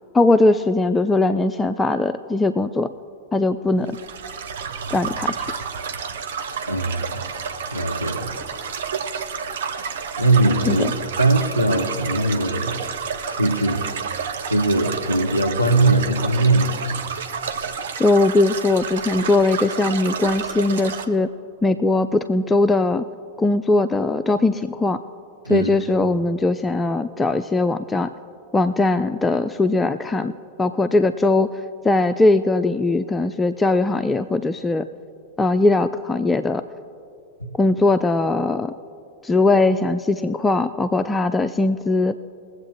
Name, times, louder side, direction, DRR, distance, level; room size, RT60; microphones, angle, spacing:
voice 1, 0.1-2.9 3.3-4.0 4.9-5.4 10.7-10.9 18.0-21.3 21.6-23.0 23.4-25.0 25.5-28.1 28.5-31.5 31.8-34.9 35.4-36.6 37.6-38.7 39.2-42.1, left 2 dB, 10° left, 10 dB, 0.3 m, -20 dB
sound 1, 3.8-21.1, right 6 dB, 60° right, 0.8 m, -30 dB
voice 2, 6.7-7.3 7.7-8.3 10.2-10.9 11.2-12.8 13.3-13.9 14.5-16.7 25.4-25.7 37.4-37.5, right 2 dB, 90° right, 1 dB, 1.1 m, -20 dB
21.5 x 7.8 x 3.1 m, 2.6 s
figure-of-eight pair, 90°, 0 cm